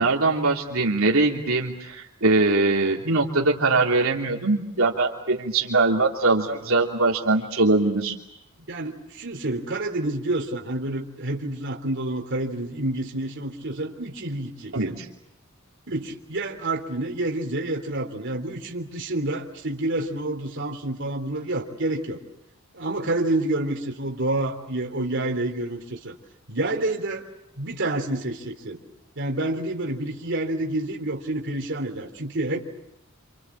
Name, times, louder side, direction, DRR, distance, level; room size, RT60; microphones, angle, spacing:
voice 1, 0.0-8.1 14.7-15.1, right 3 dB, 80° right, -1 dB, 3.1 m, -22 dB
voice 2, 8.7-15.0 15.9-22.2 22.7-26.1 26.5-27.3 27.6-28.8 29.2-32.6, right 2 dB, 60° right, 2 dB, 3.4 m, -28 dB
28.5 x 27.5 x 7.4 m, 0.84 s
head